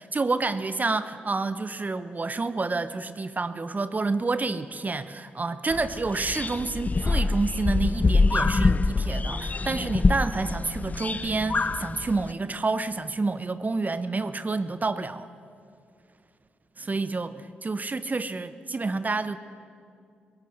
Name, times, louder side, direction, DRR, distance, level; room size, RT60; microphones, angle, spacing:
voice 1, 0.0-15.3 16.8-19.4, right 3 dB, 35° right, 13 dB, 0.9 m, -29 dB
sound 1, 5.7-12.3, left 3 dB, 35° left, 0.6 m, -25 dB
20.5 x 17.0 x 8.0 m, 2.4 s
hypercardioid pair, 40°, 5 cm